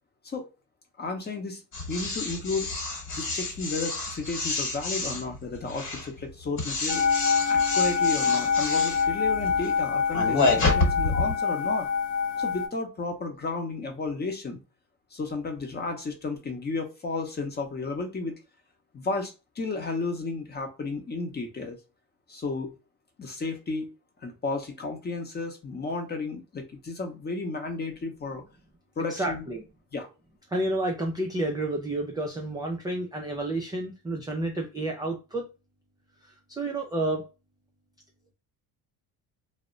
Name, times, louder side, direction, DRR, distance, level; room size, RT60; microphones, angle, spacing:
voice 1, 1.0-1.6 1.9-2.7 3.1-7.0 7.5-11.9 12.4-14.6 15.1-18.4 18.9-21.8 22.3-22.7 23.2-23.9 24.2-28.4 29.0-29.4 29.9-30.1, left 3 dB, 25° left, 4 dB, 0.7 m, -33 dB
sound 1, 1.7-11.3, left 3 dB, 50° left, 1.2 m, -29 dB
sound 2, 6.9-12.7, left 6 dB, 85° left, 0.8 m, -25 dB
voice 2, 29.1-29.6 30.5-35.5 36.5-37.3, right 2 dB, 10° right, 0 dB, 0.3 m, -30 dB
2.1 x 2.1 x 3.6 m, 0.29 s
cardioid pair, 115°, 40 cm